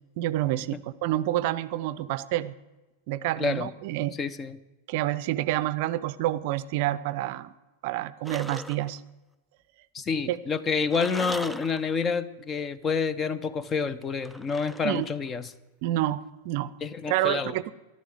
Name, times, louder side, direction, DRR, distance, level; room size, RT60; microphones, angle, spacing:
voice 1, 0.2-2.5 3.1-4.2 4.9-7.5 7.8-9.0 10.3-10.4 14.8-15.1 15.8-16.7 17.1-17.6, right 14 dB, 50° right, 17 dB, 0.6 m, -28 dB
voice 2, 3.4-3.7 4.2-4.6 9.9-15.5 16.8-17.6, left 5 dB, 25° left, 17 dB, 0.8 m, -28 dB
sound 1, 8.2-9.0 10.9-12.1 14.2-15.3, right 1 dB, ahead, 0.4 m, -39 dB
14.0 x 12.0 x 7.9 m, 1.1 s
figure-of-eight pair, 90°, 0 cm